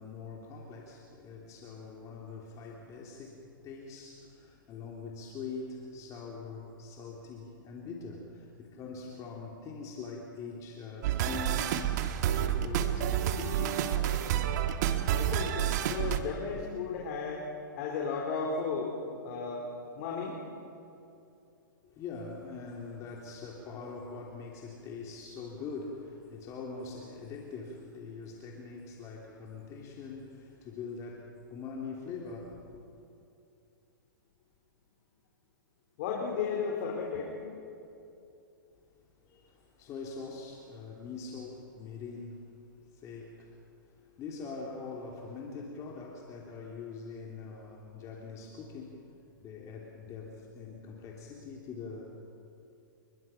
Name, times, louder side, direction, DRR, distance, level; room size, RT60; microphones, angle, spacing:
voice 1, 0.0-14.1 21.8-32.8 39.2-42.5 42.8-49.1 49.4-52.1, left 4 dB, 30° left, -1 dB, 3.0 m, -43 dB
sound 1, 11.0-16.2, right 10 dB, 50° right, 1.7 m, -29 dB
voice 2, 15.2-17.4 17.8-19.6 19.9-20.4 36.0-37.3, left 5 dB, 45° left, -2 dB, 4.3 m, -34 dB
28.5 x 22.0 x 5.8 m, 2.7 s
hypercardioid pair, 135°, 12 cm